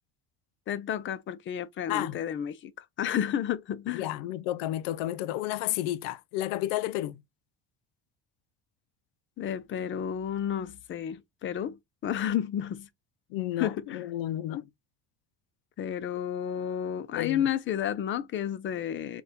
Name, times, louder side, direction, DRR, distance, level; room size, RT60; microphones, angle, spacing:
voice 1, 0.7-4.1 9.4-12.9 13.6-14.0 15.8-19.2, left 9 dB, 35° left, 0.5 m, -31 dB
voice 2, 3.9-7.2 13.3-14.7 17.2-17.5, left 14 dB, 85° left, 0.5 m, -31 dB
4.1 x 2.3 x 3.6 m
cardioid pair, 130°, 34 cm